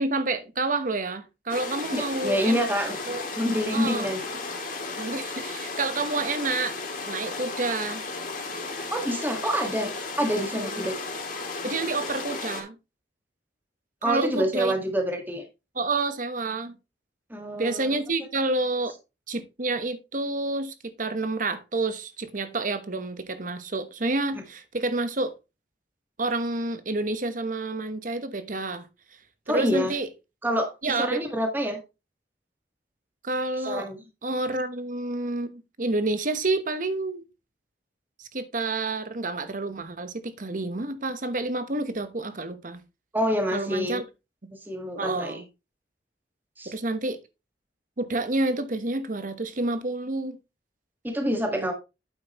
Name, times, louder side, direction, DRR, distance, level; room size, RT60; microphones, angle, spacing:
voice 1, 0.0-2.6 3.1-3.2 3.7-4.1 5.0-6.8 7.1-8.1 11.6-12.8 14.0-14.7 15.8-16.7 17.6-18.9 19.3-25.3 26.2-28.9 29.5-30.1 30.8-31.2 33.2-33.9 34.2-37.2 38.2-42.8 43.5-44.0 45.0-45.4 46.7-47.2 48.0-50.4 51.5-51.7, right 2 dB, 50° right, 1.1 m, -29 dB
sound 1, 1.5-12.6, left 3 dB, 50° left, 3.0 m, -34 dB
voice 2, 1.9-3.0 3.3-4.4 8.9-9.9 10.2-11.0 14.0-15.4 17.3-18.0 29.5-29.9 30.4-31.8 33.6-34.0 43.1-44.0 44.5-45.4 46.6-46.7 51.0-51.7, equal, 10° right, 1.7 m, -27 dB
9.0 x 7.8 x 3.0 m
head